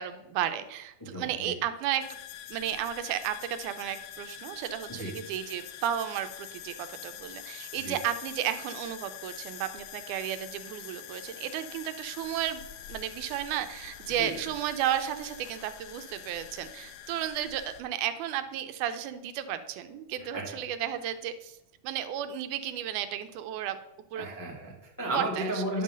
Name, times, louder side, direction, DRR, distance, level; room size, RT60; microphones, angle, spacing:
voice 1, 0.0-2.1 2.5-21.6 21.8-23.8 24.1-24.3 25.1-25.6, right 11 dB, 85° right, 10 dB, 2.1 m, -33 dB
voice 2, 1.0-1.6 4.9-5.1 7.8-7.9 14.2-14.3 20.2-20.4 24.1-25.8, right 1 dB, 15° left, -3 dB, 0.8 m, -34 dB
sound 1, 2.0-17.8, left 10 dB, 80° left, 1.8 m, -45 dB
10.0 x 3.9 x 6.2 m, 0.91 s
omnidirectional pair, 3.5 m